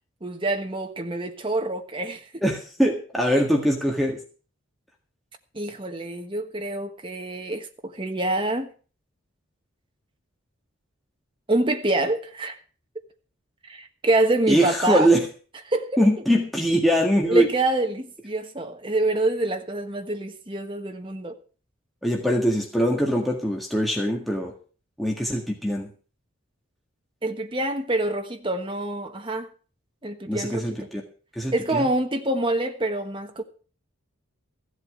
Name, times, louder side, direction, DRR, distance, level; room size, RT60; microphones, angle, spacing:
voice 1, 0.2-2.2 5.5-8.7 11.5-12.6 13.7-15.1 15.7-16.0 17.3-21.3 27.2-29.5 30.0-30.9 31.5-33.4, right 2 dB, 25° right, 1.4 m, -26 dB
voice 2, 2.4-4.2 14.5-15.2 16.0-17.5 22.0-24.5 25.0-25.9 30.3-31.0 31.4-31.9, equal, ahead, 1.8 m, -22 dB
15.0 x 8.2 x 6.5 m
head